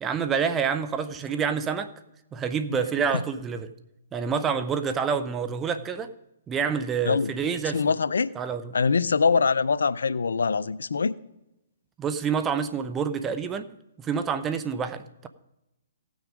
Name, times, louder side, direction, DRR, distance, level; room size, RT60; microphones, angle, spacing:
voice 1, 0.0-1.9 2.3-3.7 4.1-6.1 6.5-7.9 8.3-8.7 12.0-13.7 14.0-15.3, right 6 dB, 15° right, 0.7 m, -27 dB
voice 2, 7.7-8.3 8.7-11.1, left 5 dB, 80° left, 0.5 m, -23 dB
17.0 x 6.2 x 5.0 m
hypercardioid pair, 140°, 0 cm